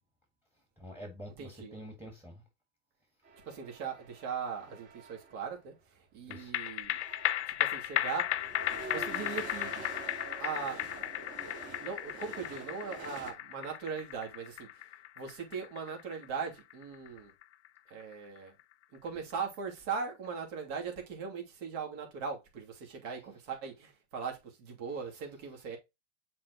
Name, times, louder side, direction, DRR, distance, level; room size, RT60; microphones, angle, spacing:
voice 1, 0.8-2.4 6.3-6.5, equal, 5° right, 1.8 m, -47 dB
voice 2, 1.4-1.7 3.5-7.0 7.6-8.5 8.8-9.8 10.4-11.1 11.8-14.9 15.2-17.3 17.9-18.6 18.9-25.8, right 5 dB, 55° right, 2.9 m, -39 dB
sound 1, 3.2-5.5 6.4-6.5 6.8-13.3, right 4 dB, 35° right, 2.0 m, -47 dB
sound 2, 6.3-19.0 19.3-19.4, left 14 dB, 75° left, 0.7 m, -36 dB
7.3 x 4.5 x 2.9 m
hypercardioid pair, 115°, 34 cm